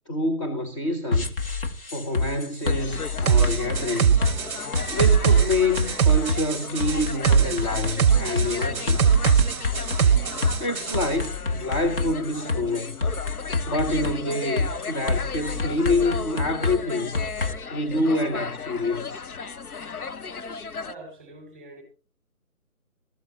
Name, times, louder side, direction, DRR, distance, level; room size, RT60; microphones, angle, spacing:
voice 1, 0.1-1.3 1.9-4.3 4.9-9.0 10.6-13.0 13.7-17.2 17.7-19.2, left 2 dB, 20° left, 1.1 m, -27 dB
sound 1, 1.1-17.5, left 3 dB, 40° left, 1.7 m, -28 dB
sound 2, 2.6-20.9, left 5 dB, 75° left, 0.8 m, -36 dB
sound 3, 3.3-11.1, right 7 dB, 75° right, 0.6 m, -22 dB
voice 2, 20.8-21.8, right 2 dB, 5° left, 5.3 m, -45 dB
19.0 x 14.5 x 2.9 m
figure-of-eight pair, 150°, 44 cm